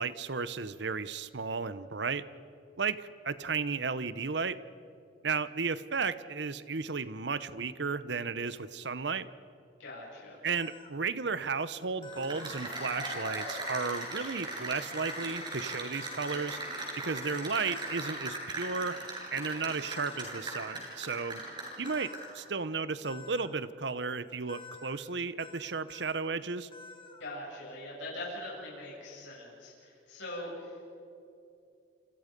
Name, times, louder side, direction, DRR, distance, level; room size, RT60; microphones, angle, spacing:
voice 1, 0.0-2.2 2.8-4.6 5.2-9.3 10.4-16.6 17.0-19.0 19.3-21.4 21.8-26.7, right 5 dB, 70° right, 15 dB, 0.9 m, -34 dB
voice 2, 9.8-10.4 27.2-30.8, left 1 dB, 85° left, -6 dB, 7.7 m, -42 dB
sound 1, 10.5-10.9 12.0-12.5 13.6-14.2 14.9-15.4 15.9-16.3 17.2-18.0 18.7-19.0 19.8-20.3 21.8-22.3 23.0-23.5 24.5-24.9 25.4-25.6 25.9-26.2 26.7-27.2, left 4 dB, 30° left, 2.7 m, -48 dB
Cheering / Applause, 12.0-22.4, right 2 dB, 25° right, 6.9 m, -39 dB
28.5 x 28.0 x 5.3 m, 2.6 s
head